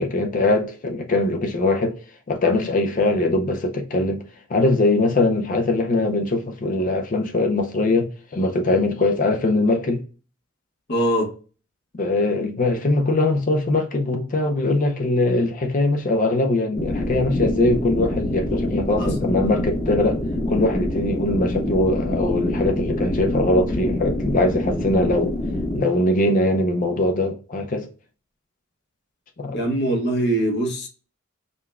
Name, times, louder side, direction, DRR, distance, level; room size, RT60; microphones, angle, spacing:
voice 1, 0.0-2.0 2.3-4.2 4.5-10.0 12.0-25.3 25.7-27.9 29.4-29.5, left 2 dB, 40° left, 0.5 m, -21 dB
voice 2, 10.9-11.3 19.0-19.2 29.5-30.9, right 1 dB, 60° left, 1.0 m, -22 dB
sound 1, 16.7-25.8, left 1 dB, 20° left, 0.9 m, -26 dB
5.1 x 2.2 x 2.3 m
head